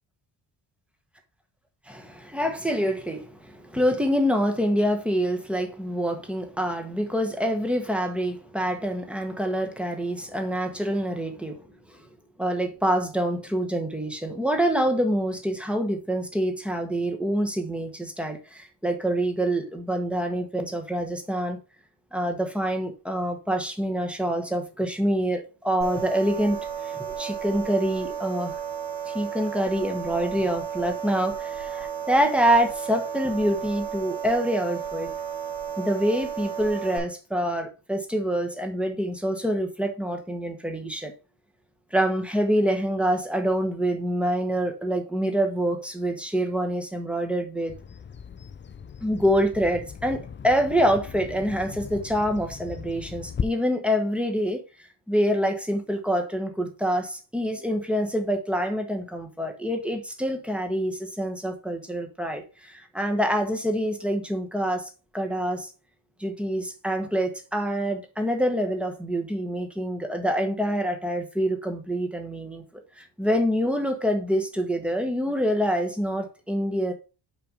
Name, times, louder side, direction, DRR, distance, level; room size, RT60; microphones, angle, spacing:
voice 1, 1.9-11.6 11.9-12.0 12.4-21.6 22.1-28.6 29.1-35.1 35.8-41.1 41.9-47.7 49.0-65.7 66.2-72.6 73.0-76.9, equal, ahead, 1.1 m, -26 dB
sound 1, 25.8-37.0, right 8 dB, 70° right, 2.9 m, -33 dB
Bird vocalization bird call bird song, 47.7-53.4, left 7 dB, 25° left, 0.4 m, -37 dB
5.7 x 5.2 x 5.0 m
wide cardioid pair, 165°, 46 cm